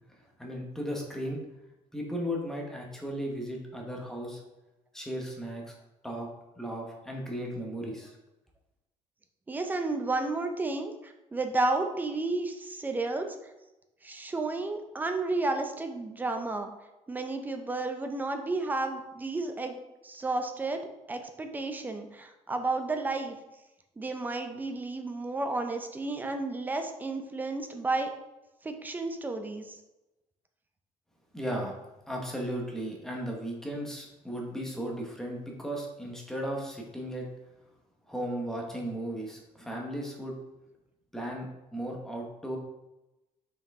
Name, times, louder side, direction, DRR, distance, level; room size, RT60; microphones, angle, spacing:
voice 1, 0.4-1.4 1.9-4.4 4.9-5.7 6.0-6.3 6.6-8.2 31.3-31.7 32.1-37.3 38.1-40.3 41.1-42.6, equal, 5° left, -1 dB, 1.0 m, -36 dB
voice 2, 9.5-13.3 14.0-16.7 17.1-19.8 20.0-20.8 21.1-23.4 24.0-28.1 28.6-29.8, right 2 dB, 15° right, 5 dB, 0.5 m, -32 dB
5.8 x 4.7 x 3.5 m, 0.97 s
cardioid pair, 175°, 13 cm